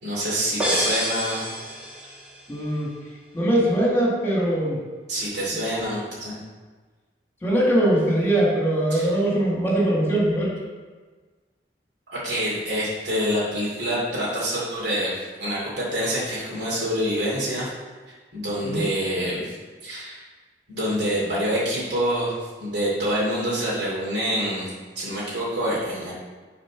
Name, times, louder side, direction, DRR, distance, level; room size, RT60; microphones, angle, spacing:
voice 1, 0.0-1.5 5.1-6.4 8.9-9.1 12.1-17.7 18.3-19.6 19.8-20.2 20.7-22.3 22.6-24.7 25.0-26.1, equal, 75° right, -8 dB, 2.5 m, -26 dB
sound 1, 0.6-2.4, equal, 10° right, 1.6 m, -27 dB
voice 2, 2.5-2.9 3.3-4.8 7.4-10.5 18.6-18.9, right 1 dB, 15° left, -5 dB, 1.9 m, -21 dB
7.7 x 4.2 x 5.9 m, 1.4 s
head